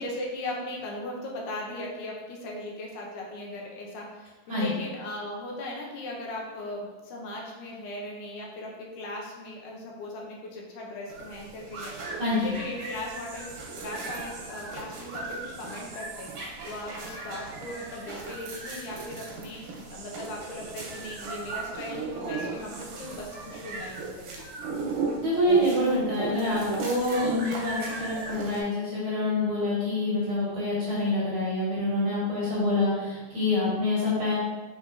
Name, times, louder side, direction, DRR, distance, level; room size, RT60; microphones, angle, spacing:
voice 1, 0.0-24.5, left 1 dB, 85° left, -2 dB, 2.4 m, -38 dB
sound 1, 11.1-28.6, right 3 dB, 75° right, 2.1 m, -37 dB
voice 2, 12.2-12.5 25.2-34.3, left 1 dB, 55° right, -8 dB, 1.6 m, -26 dB
5.7 x 3.8 x 2.5 m, 1.2 s
omnidirectional pair, 3.6 m